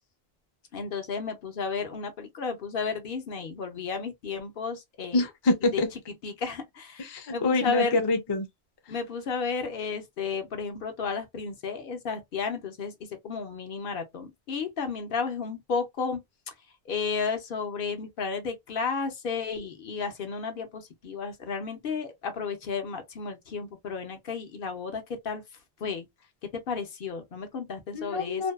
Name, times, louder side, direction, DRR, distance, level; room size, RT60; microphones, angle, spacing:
voice 1, 0.7-5.3 5.7-5.8 6.1-8.0 8.9-16.2 16.5-16.6 16.9-25.4 25.8-26.1 26.4-28.5, left 5 dB, 65° left, 0.8 m, -33 dB
voice 2, 5.1-5.9 7.1-8.5 27.9-28.5, left 2 dB, 35° left, 0.5 m, -26 dB
2.6 x 2.2 x 2.2 m
omnidirectional pair, 1.1 m